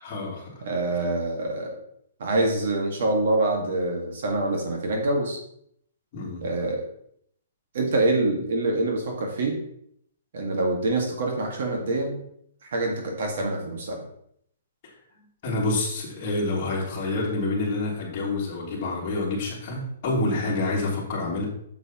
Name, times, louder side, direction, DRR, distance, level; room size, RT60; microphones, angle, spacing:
voice 1, 0.0-0.5 6.1-6.4 15.4-21.5, left 2 dB, 25° left, -5 dB, 2.8 m, -27 dB
voice 2, 0.6-1.7 2.2-5.4 6.4-6.8 7.7-9.6 10.3-12.2 12.7-14.0, right 2 dB, 55° right, 1 dB, 1.7 m, -25 dB
8.6 x 6.9 x 3.0 m, 0.70 s
hypercardioid pair, 175°, 0 cm